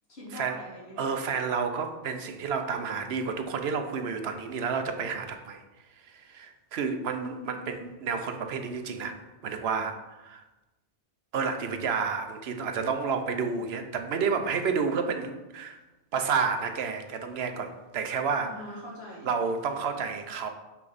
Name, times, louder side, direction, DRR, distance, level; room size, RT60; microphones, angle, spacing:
voice 1, 0.1-1.2 7.3-7.9 18.4-19.3, left 1 dB, 70° left, -7 dB, 2.8 m, -44 dB
voice 2, 1.0-5.6 6.0-10.4 11.3-15.8 16.1-18.5 19.2-20.5, right 5 dB, 75° right, 7 dB, 0.9 m, -30 dB
5.9 x 5.7 x 4.0 m, 1.1 s
omnidirectional pair, 1.1 m